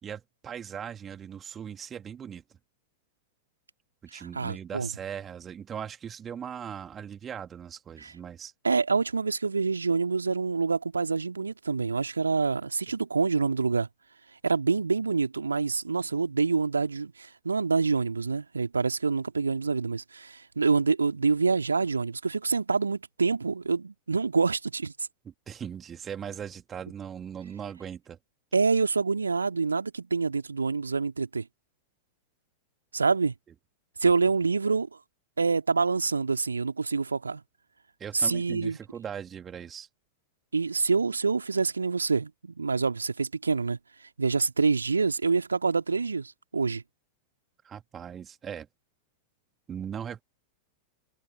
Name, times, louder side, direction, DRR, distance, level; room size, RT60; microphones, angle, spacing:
voice 1, 0.0-2.4 4.1-8.5 25.2-28.2 34.0-34.1 38.0-39.9 47.6-48.7 49.7-50.2, right 8 dB, 25° right, 2.3 m, -39 dB
voice 2, 4.1-4.9 8.0-8.1 8.6-13.9 14.4-25.1 28.5-31.5 32.9-33.3 34.0-34.9 35.4-37.4 38.1-38.8 40.5-43.8 44.2-46.8, right 4 dB, 75° right, 2.3 m, -26 dB
figure-of-eight pair, 90°, 0 cm